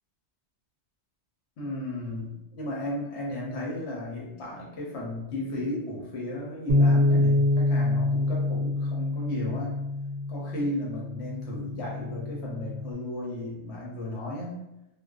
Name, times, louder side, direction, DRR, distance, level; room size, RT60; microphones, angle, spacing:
voice 1, 1.6-9.8 10.3-14.6, left 1 dB, 75° left, -3 dB, 1.1 m, -34 dB
Bass guitar, 6.7-12.9, left 2 dB, 65° right, 0.7 m, -26 dB
2.4 x 2.2 x 2.3 m, 0.93 s
omnidirectional pair, 1.1 m